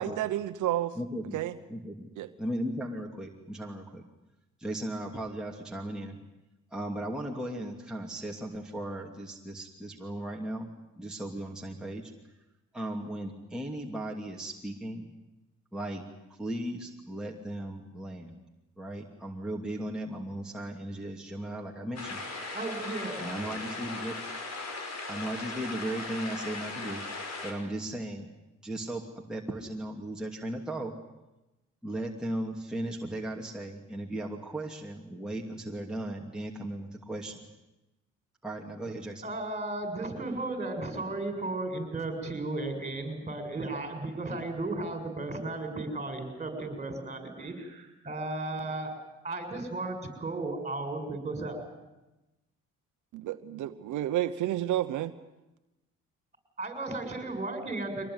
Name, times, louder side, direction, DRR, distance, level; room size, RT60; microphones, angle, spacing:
voice 1, 0.0-0.9 1.3-1.5 2.2-2.3 53.1-55.1, right 13 dB, 80° right, 9 dB, 1.0 m, -30 dB
voice 2, 0.9-1.4 1.7-2.1 2.4-4.0 4.6-6.2 6.7-12.1 12.7-15.1 15.7-16.0 16.3-18.4 18.8-22.2 23.2-24.2 25.1-27.0 27.4-28.3 28.6-30.9 31.8-37.5 38.4-39.2, right 1 dB, ahead, -1 dB, 2.7 m, -36 dB
sound 1, 22.0-27.5, left 3 dB, 60° left, 5.5 m, -38 dB
voice 3, 22.5-23.2 39.2-48.9 49.2-51.6 56.6-58.1, right 2 dB, 20° right, 6 dB, 7.1 m, -35 dB
24.0 x 19.0 x 9.6 m, 1.0 s
cardioid pair, 90°, 30 cm